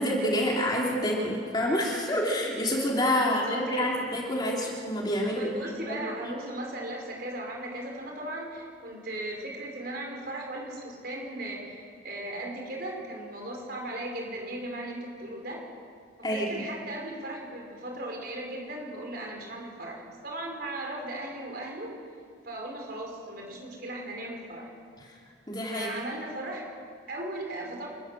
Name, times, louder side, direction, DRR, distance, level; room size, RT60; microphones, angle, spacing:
voice 1, 0.0-5.5 5.9-6.3 16.2-16.6 25.5-25.9, equal, 20° left, -2 dB, 3.3 m, -28 dB
voice 2, 3.2-3.9 5.3-15.6 16.2-21.9 22.4-24.7 25.7-26.6 27.1-27.9, right 1 dB, 50° right, 0 dB, 5.2 m, -37 dB
29.0 x 14.0 x 7.6 m, 2.1 s
head